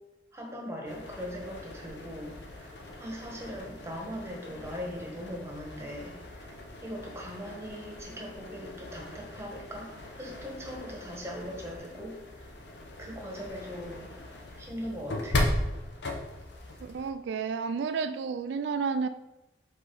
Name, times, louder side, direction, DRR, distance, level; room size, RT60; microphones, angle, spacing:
voice 1, 0.3-6.5 6.8-12.5 13.0-14.1 14.6-15.4, equal, 15° right, -1 dB, 1.2 m, -40 dB
sound 1, 0.9-17.1, left 1 dB, 65° left, 0.9 m, -38 dB
voice 2, 16.8-19.1, right 5 dB, 70° right, 10 dB, 0.3 m, -31 dB
5.4 x 4.0 x 4.7 m, 0.98 s
head